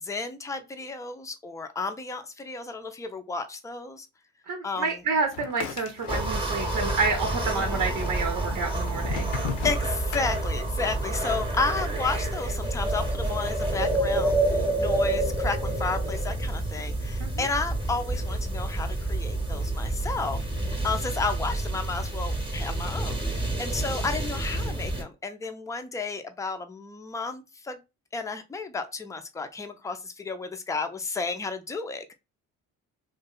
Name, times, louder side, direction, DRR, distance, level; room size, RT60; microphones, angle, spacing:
voice 1, 0.0-4.1 4.6-4.9 7.6-7.8 9.6-27.8 28.1-32.1, left 4 dB, 10° left, 0.3 m, -32 dB
voice 2, 4.5-9.3 17.2-17.5, right 4 dB, 50° right, 0.7 m, -29 dB
sound 1, 5.3-6.8 7.0-7.8 8.4-10.9, left 7 dB, 70° left, 0.5 m, -36 dB
sound 2, 6.1-25.0, right 2 dB, 10° right, 0.8 m, -28 dB
2.7 x 2.2 x 2.3 m
hypercardioid pair, 50°, 44 cm